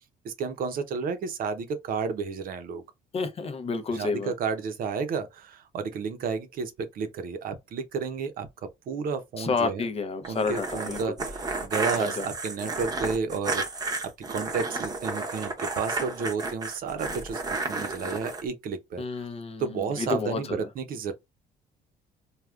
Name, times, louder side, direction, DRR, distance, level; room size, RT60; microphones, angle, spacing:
voice 1, 0.2-2.8 3.9-8.5 8.9-9.8 10.3-13.6 14.3-19.3 19.6-21.1, right 5 dB, 60° right, 0.7 m, -32 dB
voice 2, 3.1-4.3 9.4-11.1 12.0-12.3 19.0-20.7, left 4 dB, 35° left, 0.6 m, -30 dB
sound 1, 10.2-18.4, right 3 dB, 20° right, 0.8 m, -32 dB
3.4 x 2.3 x 2.4 m
cardioid pair, 110°, 17 cm